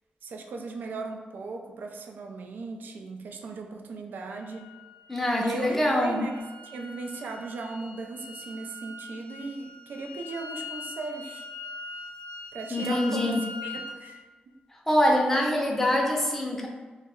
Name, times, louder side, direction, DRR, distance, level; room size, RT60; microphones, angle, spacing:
voice 1, 0.2-4.7 5.4-11.5 12.5-13.3 13.6-14.2, right 3 dB, 80° right, 2 dB, 0.3 m, -37 dB
sound 1, 4.3-14.0, left 2 dB, 80° left, 0.5 m, -42 dB
voice 2, 5.1-6.2 12.7-13.4 14.9-16.7, left 1 dB, 10° left, -1 dB, 0.5 m, -24 dB
2.1 x 2.1 x 3.5 m, 1.3 s
cardioid pair, 80°, 3 cm